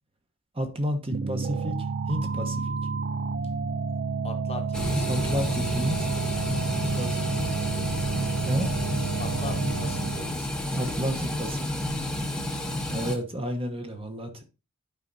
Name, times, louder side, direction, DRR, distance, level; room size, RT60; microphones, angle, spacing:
voice 1, 0.5-1.8 2.1-2.8 5.1-6.1 7.0-7.8 8.4-8.7 10.7-11.8 12.9-14.4, equal, 25° right, 1.1 m, -31 dB
sound 1, 1.1-10.4, right 4 dB, 45° right, 0.4 m, -30 dB
voice 2, 4.2-5.3 5.6-5.7 9.2-10.8, left 3 dB, 25° left, 1.1 m, -41 dB
sound 2, 4.7-13.2, left 1 dB, 5° left, 1.0 m, -31 dB
12.0 x 4.9 x 2.7 m
head